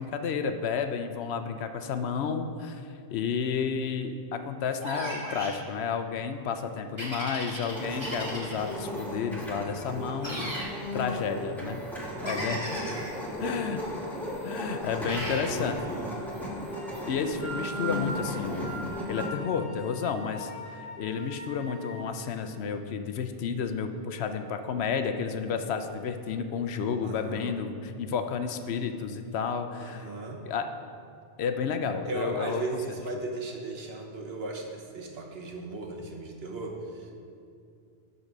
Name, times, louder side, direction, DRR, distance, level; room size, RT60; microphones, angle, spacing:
voice 1, 0.0-2.8 3.1-10.5 10.9-11.8 12.2-12.8 13.4-13.8 14.4-15.8 17.1-30.1 30.5-30.7 31.4-32.6, left 6 dB, 90° left, 8 dB, 0.9 m, -31 dB
sound 1, 4.8-5.6 7.0-8.7 10.2-10.7 12.2-13.1 15.1-15.5, equal, 25° right, 2.0 m, -36 dB
sound 2, 7.7-19.3, equal, ahead, 1.5 m, -35 dB
voice 2, 12.1-13.3 15.1-16.4 27.0-27.5 29.8-30.4 32.0-37.1, right 2 dB, 70° right, 1 dB, 1.3 m, -37 dB
sound 3, 16.7-22.0, right 2 dB, 55° left, 2.0 m, -41 dB
11.5 x 4.1 x 6.1 m, 2.4 s
omnidirectional pair, 1.1 m